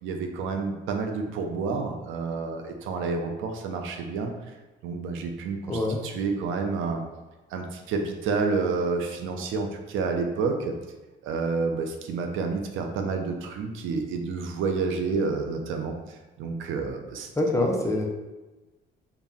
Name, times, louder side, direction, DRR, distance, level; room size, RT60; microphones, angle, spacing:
voice 1, 0.0-4.3 4.8-7.0 7.5-10.7 11.2-17.3, right 4 dB, 90° right, 4 dB, 0.4 m, -29 dB
voice 2, 5.7-6.0 17.4-18.0, left 2 dB, 15° left, 0 dB, 0.5 m, -25 dB
2.5 x 2.0 x 3.5 m, 1.1 s
cardioid pair, 90°, 20 cm